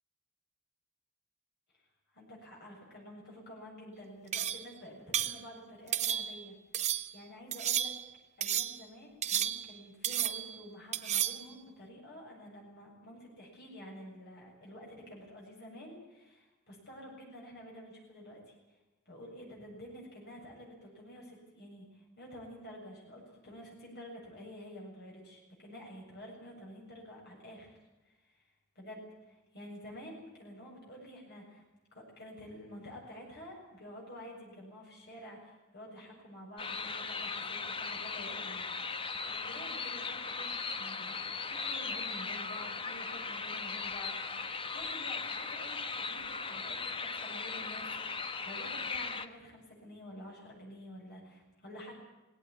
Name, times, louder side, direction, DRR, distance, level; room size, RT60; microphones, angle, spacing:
voice 1, 2.1-7.9 8.4-18.5 19.1-27.8 28.0-28.5 28.8-31.6 31.9-38.6 39.2-51.9, equal, 50° left, -2 dB, 7.5 m, -50 dB
sound 1, 4.3-4.7 5.1-5.4 5.9-6.4 6.7-7.1 7.5-8.1 8.4-8.8 9.2-9.8 10.0-10.6 10.9-11.5, right 10 dB, 35° right, 0.9 m, -33 dB
sound 2, 36.6-49.3, left 4 dB, 25° left, 1.2 m, -38 dB
19.5 x 18.0 x 9.9 m, 1.1 s
head